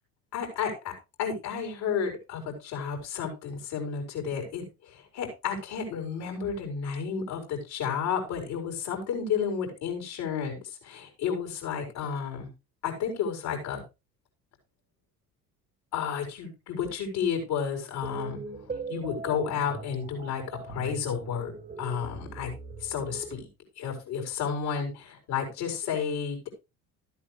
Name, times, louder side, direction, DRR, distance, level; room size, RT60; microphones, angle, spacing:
voice 1, 0.3-0.9 1.2-12.5 12.8-13.8 15.9-18.4 18.9-21.5 21.8-22.5 22.8-23.5 23.8-26.5, left 7 dB, 55° left, 4 dB, 4.8 m, -32 dB
sound 1, 18.0-23.3, right 4 dB, 15° right, 1.5 m, -40 dB
13.5 x 8.4 x 3.3 m, 0.27 s
figure-of-eight pair, 60°, 46 cm